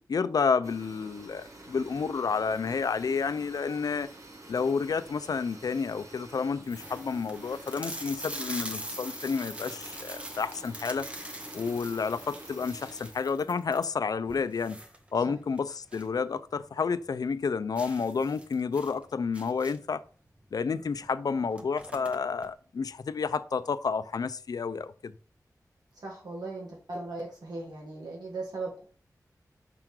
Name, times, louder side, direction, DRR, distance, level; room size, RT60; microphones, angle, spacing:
voice 1, 0.1-4.1 4.5-11.1 11.5-14.8 15.1-20.0 20.5-25.1, left 5 dB, 70° left, 0.4 m, -30 dB
sound 1, 0.6-13.1, right 1 dB, 55° right, 1.3 m, -48 dB
sound 2, 5.0-5.3 5.9-6.0 6.2-6.3 6.6-16.2 16.5-16.6 17.0-17.1 17.8-20.0 20.9-21.1 21.3-22.5, right 1 dB, 20° right, 0.9 m, -43 dB
voice 2, 26.0-28.8, right 3 dB, 80° right, 1.8 m, -38 dB
5.7 x 3.7 x 4.5 m
wide cardioid pair, 90°, 7 cm